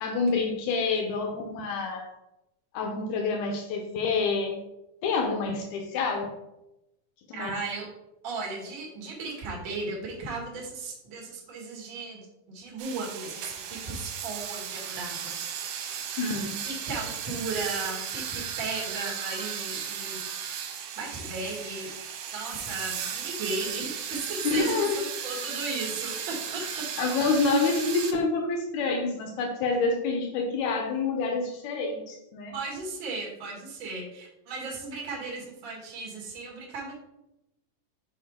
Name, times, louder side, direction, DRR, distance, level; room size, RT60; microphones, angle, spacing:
voice 1, 0.0-2.1 2.7-4.6 5.0-6.3 7.3-7.5 16.2-16.6 24.4-25.0 27.0-32.5, left 4 dB, 85° left, 2 dB, 1.6 m, -27 dB
voice 2, 7.3-7.9 8.2-15.4 16.7-20.2 20.7-21.9 22.2-26.9 32.5-36.9, right 3 dB, 45° right, -2 dB, 1.8 m, -36 dB
sound 1, 12.8-28.1, right 8 dB, 80° right, 2.4 m, -35 dB
6.5 x 4.7 x 3.6 m, 0.90 s
omnidirectional pair, 4.3 m